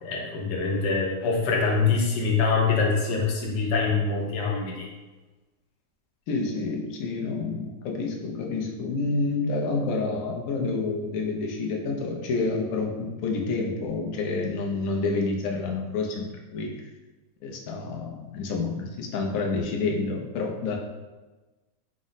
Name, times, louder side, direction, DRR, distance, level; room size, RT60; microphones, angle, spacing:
voice 1, 0.0-4.9, left 4 dB, 90° left, -1 dB, 1.4 m, -24 dB
voice 2, 6.3-16.8 17.4-20.8, left 3 dB, 65° left, 0 dB, 0.9 m, -28 dB
5.0 x 2.0 x 3.9 m, 1.2 s
omnidirectional pair, 1.8 m